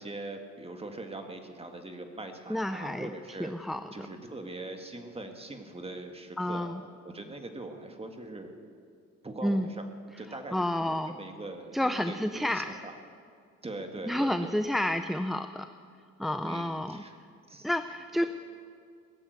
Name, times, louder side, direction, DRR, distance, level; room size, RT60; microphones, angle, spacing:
voice 1, 0.0-3.5 3.9-6.7 7.1-8.5 9.2-9.9 10.2-12.9 13.6-14.5 16.4-17.2 17.5-17.7, right 2 dB, 20° right, 5 dB, 1.8 m, -41 dB
voice 2, 2.5-3.1 3.4-3.9 6.4-6.8 9.4-9.7 10.3-11.1 11.7-12.8 14.1-15.7 16.2-17.0 17.6-18.2, left 1 dB, ahead, 9 dB, 0.4 m, -30 dB
18.5 x 7.1 x 9.4 m, 2.2 s
cardioid pair, 90°, 30 cm